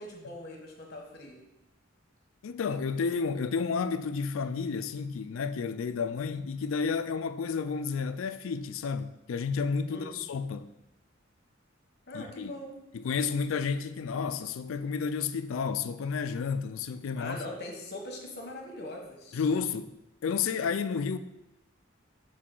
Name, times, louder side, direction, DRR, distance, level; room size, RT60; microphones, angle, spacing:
voice 1, 0.0-1.4 9.9-10.2 12.1-12.8 17.2-19.4, left 1 dB, 55° left, 1.2 m, -41 dB
voice 2, 2.4-10.7 12.1-12.5 12.9-17.4 19.3-19.9 20.2-21.2, left 5 dB, 90° left, 0.4 m, -31 dB
6.4 x 4.7 x 3.8 m
head